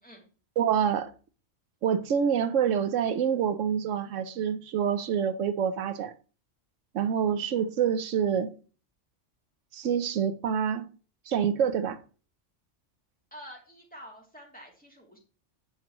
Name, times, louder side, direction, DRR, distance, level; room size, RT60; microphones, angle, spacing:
voice 1, 0.6-1.1 1.8-6.1 6.9-8.5 9.7-10.9 11.3-12.0, right 8 dB, 85° right, 1.0 m, -27 dB
voice 2, 13.3-15.2, equal, 5° left, 2.7 m, -48 dB
9.7 x 7.3 x 3.0 m
omnidirectional pair, 1.3 m